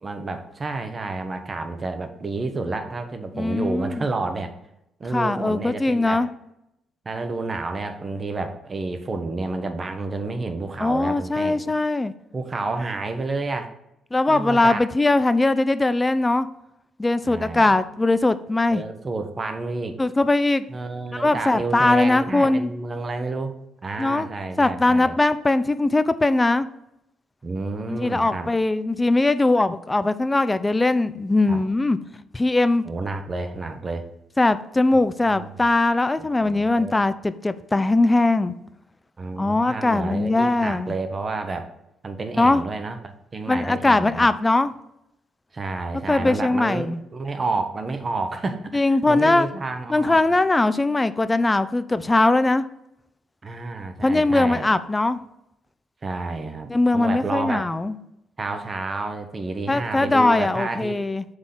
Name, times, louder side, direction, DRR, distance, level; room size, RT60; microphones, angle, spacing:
voice 1, 0.0-4.5 5.0-6.3 7.0-11.7 12.3-13.7 14.3-14.9 17.2-17.7 18.7-20.0 20.7-25.2 27.4-28.5 31.5-31.6 32.8-34.1 35.3-35.5 36.2-36.9 39.2-41.7 42.0-44.3 45.5-50.2 53.4-54.7 56.0-57.7 58.4-61.0, right 3 dB, 35° right, 7 dB, 0.9 m, -30 dB
voice 2, 3.3-4.1 5.1-6.3 10.8-12.1 14.1-16.5 17.0-18.8 20.0-20.7 21.1-22.7 24.0-24.3 24.6-26.7 27.9-32.0 32.3-32.8 34.4-38.5 39.4-40.9 42.4-42.6 43.5-44.7 46.1-47.0 48.7-49.5 49.9-52.7 54.0-55.2 56.7-57.9 59.7-61.2, left 2 dB, 15° left, 13 dB, 0.4 m, -20 dB
6.2 x 3.7 x 5.8 m, 0.83 s
cardioid pair, 90°, 0 cm